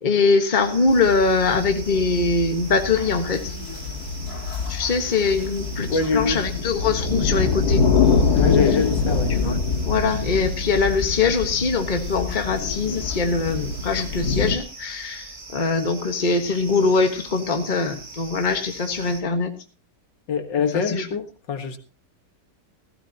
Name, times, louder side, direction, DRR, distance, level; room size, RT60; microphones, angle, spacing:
voice 1, 0.0-3.6 4.7-7.8 9.3-9.6 9.8-19.5 20.6-21.1, left 4 dB, 25° left, 1.5 m, -22 dB
sound 1, 0.5-19.2, right 2 dB, 25° right, 1.6 m, -42 dB
sound 2, 0.9-14.6, left 4 dB, 60° left, 2.1 m, -25 dB
voice 2, 5.9-6.4 8.3-9.3 20.3-21.8, left 5 dB, 75° left, 2.2 m, -24 dB
16.0 x 15.5 x 2.9 m
omnidirectional pair, 2.0 m